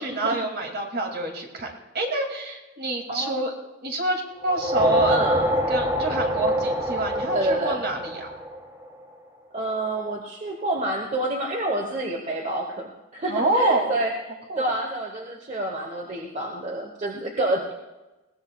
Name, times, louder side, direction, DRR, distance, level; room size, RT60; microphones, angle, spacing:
voice 1, 0.0-3.5 3.8-5.2 5.7-8.3 13.3-13.9 14.5-14.8, right 2 dB, 55° right, 2 dB, 2.5 m, -26 dB
voice 2, 3.1-3.4 5.1-5.5 7.3-7.8 9.5-14.1 14.6-17.8, right 1 dB, 35° right, 2 dB, 1.1 m, -28 dB
sound 1, 4.4-9.0, equal, 15° right, 1.1 m, -25 dB
20.5 x 17.5 x 2.4 m, 1.1 s
head